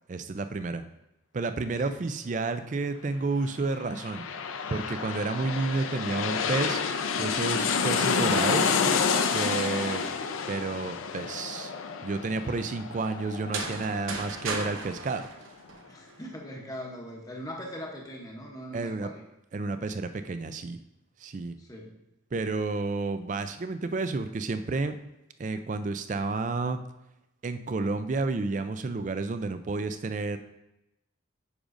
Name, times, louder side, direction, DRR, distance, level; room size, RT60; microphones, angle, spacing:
voice 1, 0.1-0.8 1.3-4.2 4.7-6.8 7.2-8.7 9.3-10.0 10.5-11.7 12.0-15.3 18.7-19.1 19.5-20.8 21.2-21.5 22.3-25.0 25.4-26.8 27.4-30.4, right 3 dB, 40° right, 10 dB, 0.3 m, -30 dB
sound 1, 3.7-15.0 15.4-15.5, left 5 dB, 90° left, 0.5 m, -29 dB
sound 2, 13.3-16.2, right 3 dB, 90° right, 0.9 m, -36 dB
voice 2, 15.9-19.2 21.5-22.0, equal, 15° left, -1 dB, 0.8 m, -41 dB
9.6 x 5.2 x 2.6 m, 0.90 s
head